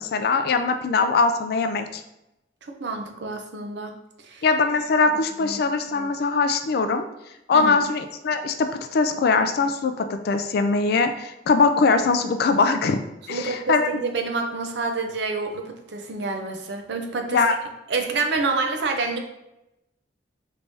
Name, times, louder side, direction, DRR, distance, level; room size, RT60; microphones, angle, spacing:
voice 1, 0.0-2.0 4.4-7.1 7.5-13.0 13.3-13.9 17.3-17.6, left 4 dB, 55° left, 8 dB, 0.3 m, -21 dB
voice 2, 2.6-3.9 4.2-4.4 5.4-5.6 7.5-7.7 13.3-17.4 17.9-19.2, right 3 dB, 65° right, 4 dB, 0.5 m, -28 dB
3.4 x 3.2 x 2.6 m, 0.90 s
head